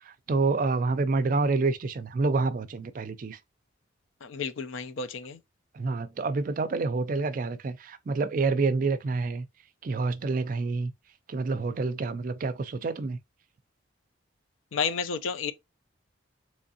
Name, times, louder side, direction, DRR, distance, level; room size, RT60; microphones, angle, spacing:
voice 1, 0.0-3.4 5.7-9.5 9.8-10.9 11.3-13.2, right 3 dB, 45° right, 0.4 m, -28 dB
voice 2, 4.2-5.4 14.7-15.5, left 5 dB, 90° left, 0.5 m, -31 dB
3.5 x 3.1 x 2.7 m
head